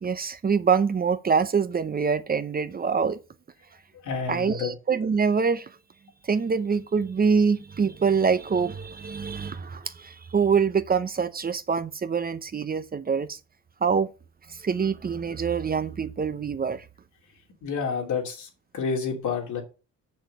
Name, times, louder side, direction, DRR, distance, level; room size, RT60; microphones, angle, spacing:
voice 1, 0.0-3.2 4.3-5.7 6.2-13.4 13.8-14.1 14.5-16.9, right 6 dB, 30° right, 0.7 m, -25 dB
voice 2, 4.0-4.7 17.6-18.5 18.7-19.6, left 5 dB, 75° left, 3.0 m, -29 dB
6.4 x 6.3 x 5.4 m
cardioid pair, 90°, 30 cm